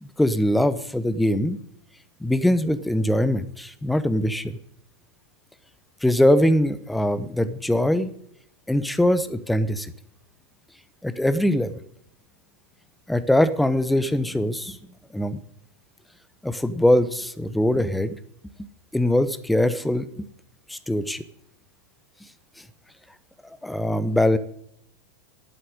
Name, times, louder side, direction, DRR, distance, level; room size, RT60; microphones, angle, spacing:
voice 1, 0.0-1.6 2.2-4.6 6.0-8.1 8.7-9.9 11.0-11.8 13.1-14.8 15.1-15.4 16.4-18.2 18.9-20.3 20.7-21.2 23.6-24.4, left 1 dB, 5° left, 14 dB, 0.8 m, -22 dB
12.0 x 7.8 x 9.7 m, 0.73 s
figure-of-eight pair, 90°, 0 cm